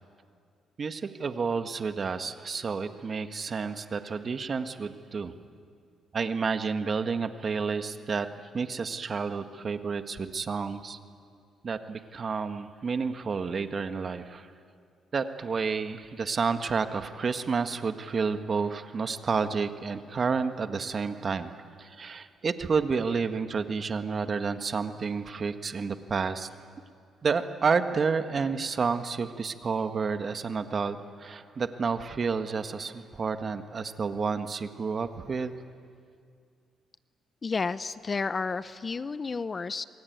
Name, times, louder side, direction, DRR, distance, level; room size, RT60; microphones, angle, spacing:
voice 1, 0.8-5.3 6.1-8.3 8.5-11.0 11.6-14.5 15.1-26.5 27.2-35.5, right 5 dB, 40° right, 8 dB, 1.7 m, -30 dB
voice 2, 37.4-39.8, left 4 dB, 35° left, 15 dB, 0.7 m, -31 dB
27.0 x 22.0 x 9.5 m, 2.3 s
cardioid pair, 90°, 0 cm